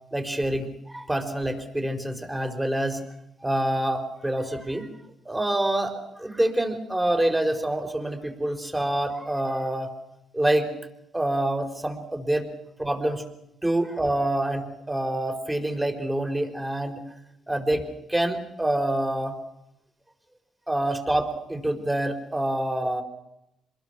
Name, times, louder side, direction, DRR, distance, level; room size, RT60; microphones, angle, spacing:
voice 1, 0.1-3.0 3.4-4.9 5.2-9.9 10.3-10.7 11.1-12.5 12.8-13.2 13.6-17.0 17.5-19.4 20.7-23.0, right 1 dB, 10° right, 6 dB, 4.9 m, -26 dB
27.5 x 21.5 x 6.2 m, 0.84 s
cardioid pair, 90°, 0 cm